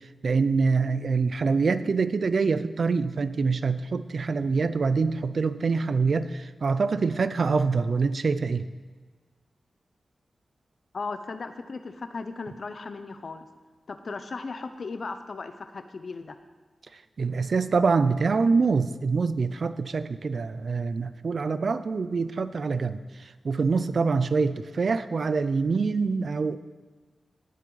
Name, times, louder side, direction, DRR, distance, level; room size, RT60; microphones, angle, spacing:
voice 1, 0.2-8.7 17.2-26.6, right 4 dB, 65° right, 13 dB, 0.5 m, -25 dB
voice 2, 10.9-13.5 13.9-16.4, left 4 dB, 60° left, 9 dB, 0.8 m, -36 dB
18.0 x 7.4 x 4.0 m, 1.3 s
wide cardioid pair, 80°, 0 cm